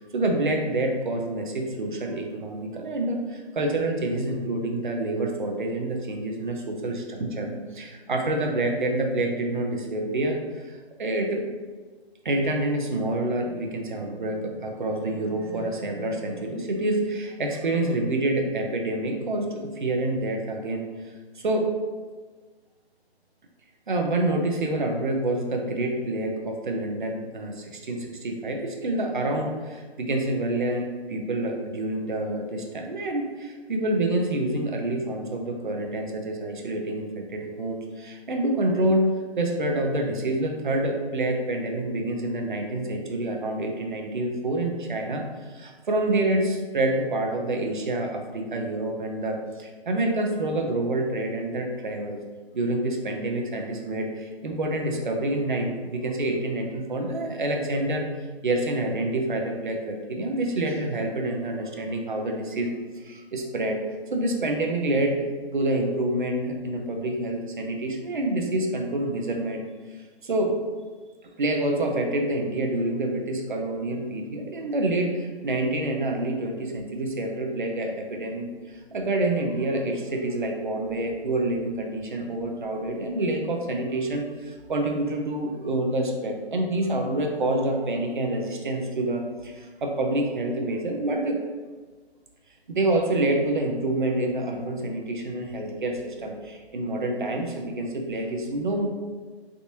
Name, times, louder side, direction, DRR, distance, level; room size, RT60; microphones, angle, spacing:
voice 1, 0.0-11.4 12.2-21.1 21.4-21.7 23.9-39.1 39.4-52.2 52.5-58.1 58.4-62.7 63.0-63.8 64.1-69.6 69.9-70.6 71.4-91.4 92.7-98.9, right 1 dB, 50° right, 2 dB, 0.5 m, -27 dB
3.4 x 2.6 x 2.7 m, 1.4 s
figure-of-eight pair, 160°, 32 cm